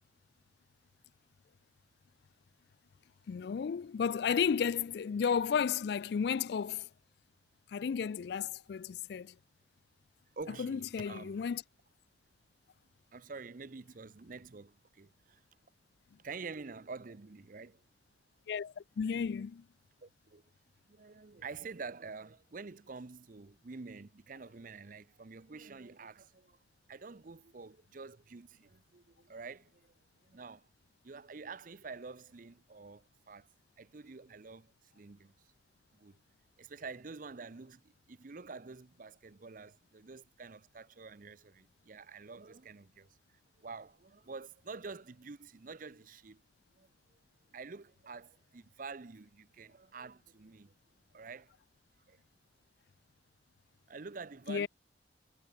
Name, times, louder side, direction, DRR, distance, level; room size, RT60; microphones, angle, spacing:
voice 1, 3.3-6.9 7.7-9.3 10.6-11.6 18.5-19.6 54.5-54.7, left 7 dB, 60° left, 0.3 m, -33 dB
voice 2, 10.4-11.4 13.1-15.4 16.2-17.8 20.0-20.4 20.9-26.6 26.9-29.9 30.2-30.7 31.0-33.5 33.8-35.3 35.9-36.2 36.6-43.2 43.6-46.4 46.8-47.2 47.5-50.7 51.1-51.5 52.1-52.2 53.9-54.7, right 4 dB, 45° right, 0.6 m, -48 dB
head